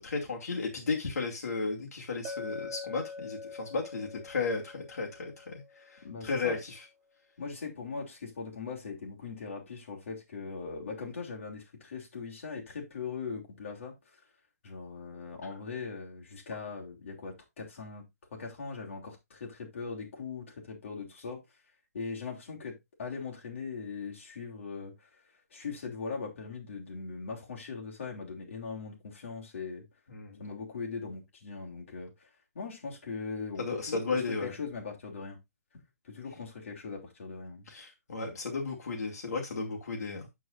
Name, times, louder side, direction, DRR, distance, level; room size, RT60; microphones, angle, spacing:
voice 1, 0.0-5.6 5.9-6.8 30.1-30.4 33.6-34.5 37.7-40.3, left 4 dB, 75° left, 2.6 m, -34 dB
Chink clink, 2.2-6.3, left 4 dB, 15° right, 0.7 m, -44 dB
voice 2, 6.0-6.6 7.4-13.9 14.6-18.0 18.3-21.4 21.9-25.1 25.5-29.8 30.4-32.3 32.5-35.4 35.7-37.7, left 5 dB, 55° left, 3.0 m, -40 dB
13.0 x 4.7 x 2.5 m
hypercardioid pair, 175°, 8 cm